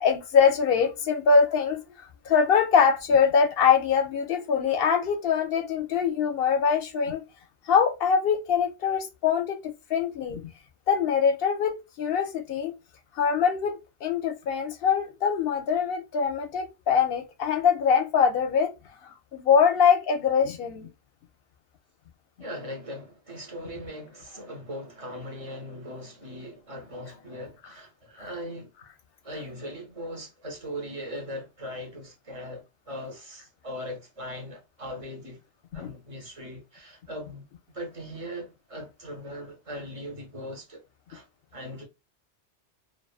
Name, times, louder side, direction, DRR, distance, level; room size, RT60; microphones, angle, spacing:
voice 1, 0.0-7.2 7.7-10.5 10.9-12.7 13.2-18.7 19.0-20.9 35.8-35.9, left 6 dB, 65° left, 0.7 m, -23 dB
voice 2, 22.4-28.7 29.2-35.4 35.7-37.5 37.7-40.8 41.1-41.3 41.5-41.8, equal, 35° right, 0.8 m, -39 dB
2.4 x 2.4 x 2.3 m
omnidirectional pair, 1.2 m